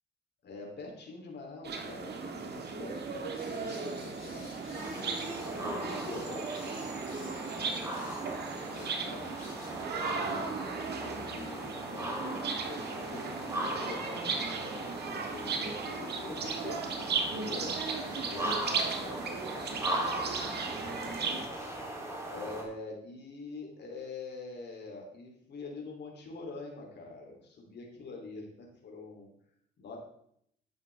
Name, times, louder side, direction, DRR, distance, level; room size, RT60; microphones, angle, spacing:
voice 1, 0.4-7.4 8.1-9.3 10.0-20.5 20.8-21.5 22.3-29.3 29.8-30.0, left 3 dB, 60° left, 0 dB, 3.2 m, -45 dB
sound 1, 1.6-21.5, right 4 dB, 55° right, 1.7 m, -36 dB
sound 2, 3.3-7.4 7.9-8.3 8.7-9.0 9.2-9.7, left 4 dB, 85° left, 4.1 m, -54 dB
sound 3, 4.7-22.6, right 1 dB, 15° right, 3.1 m, -39 dB
10.5 x 8.8 x 3.5 m, 0.72 s
cardioid pair, 90°, 20 cm